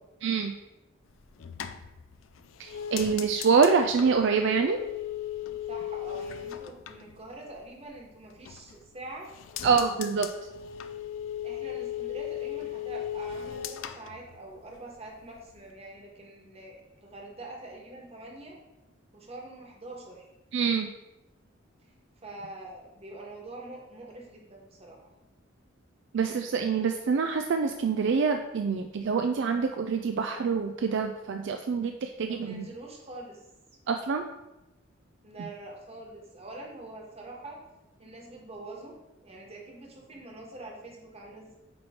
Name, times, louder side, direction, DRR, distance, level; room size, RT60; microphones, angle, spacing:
voice 1, 0.2-0.5 2.6-4.8 9.6-10.3 20.5-20.9 26.1-32.6 33.9-34.2, right 5 dB, 65° right, 5 dB, 0.4 m, -26 dB
sound 1, 1.1-7.9 8.2-8.9 9.2-14.9 15.2-15.7, left 10 dB, 80° left, 0.4 m, -38 dB
voice 2, 5.7-9.3 9.6-9.8 11.4-18.6 19.1-20.3 22.2-25.1 32.3-33.4 35.2-37.6 38.0-39.0 39.2-41.6, right 2 dB, 30° right, -1 dB, 1.4 m, -44 dB
8.7 x 3.1 x 4.3 m, 0.96 s
head